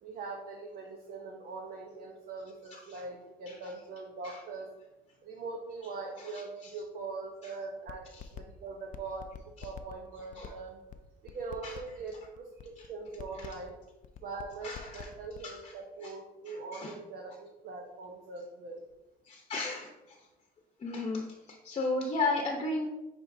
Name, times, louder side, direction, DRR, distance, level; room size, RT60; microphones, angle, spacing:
voice 1, 0.0-4.7 5.2-10.8 11.2-13.7 14.2-18.8, right 3 dB, 60° right, 1 dB, 0.9 m, -42 dB
sound 1, 7.9-8.4 8.7-15.4, left 10 dB, 50° left, 0.5 m, -46 dB
voice 2, 14.6-15.1 15.4-15.7 16.0-16.1 16.5-16.9 19.2-20.2 20.8-22.9, left 3 dB, 35° left, 2 dB, 0.9 m, -35 dB
9.2 x 4.4 x 2.7 m, 1.0 s
cardioid pair, 110°, 17 cm